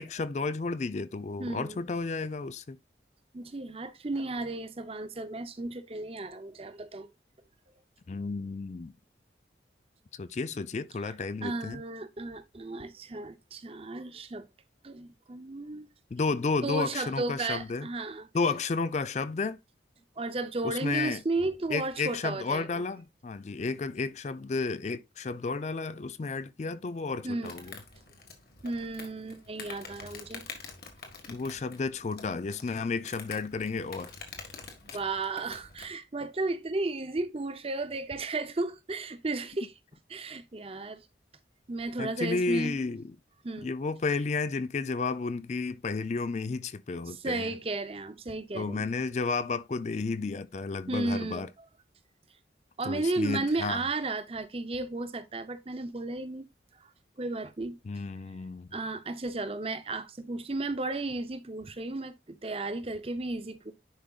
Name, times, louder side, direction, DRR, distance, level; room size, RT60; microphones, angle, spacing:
voice 1, 0.0-2.8 8.1-8.9 10.1-11.8 16.1-17.9 18.3-19.6 20.6-21.2 21.7-27.8 31.3-34.1 42.0-43.2 43.6-47.5 48.5-51.5 52.8-53.8 57.9-58.7, left 4 dB, 40° left, 0.4 m, -32 dB
voice 2, 1.4-1.8 3.3-7.1 11.4-14.5 14.8-15.9 16.6-18.3 20.2-22.8 27.2-27.6 28.6-30.4 34.9-39.7 40.1-41.1 41.7-42.8 43.4-43.7 47.0-48.9 50.9-51.5 52.8-56.5 57.2-57.8 58.7-63.7, right 2 dB, 30° right, 0.6 m, -34 dB
Insect, 27.4-36.0, left 4 dB, 55° left, 1.6 m, -47 dB
10.5 x 5.0 x 2.4 m
head